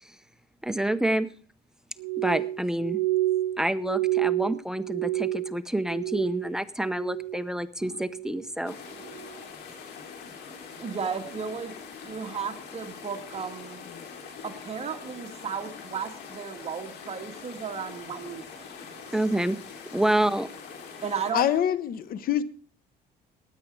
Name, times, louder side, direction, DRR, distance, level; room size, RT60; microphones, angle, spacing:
voice 1, 0.6-1.3 2.2-3.0 3.6-8.8 19.1-19.6 19.9-20.5, right 1 dB, 5° right, 0.7 m, -28 dB
Glass, 2.0-6.6 6.8-7.5 7.9-8.4 9.0-9.3, right 15 dB, 80° right, 0.7 m, -29 dB
sound 1, 8.7-21.3, left 6 dB, 75° left, 3.4 m, -43 dB
voice 2, 10.8-11.7 12.0-13.8 14.4-19.1 21.0-21.5, right 6 dB, 40° right, 1.9 m, -35 dB
voice 3, 21.3-22.4, left 10 dB, 60° left, 1.1 m, -25 dB
16.0 x 10.5 x 4.7 m
cardioid pair, 110°, 17 cm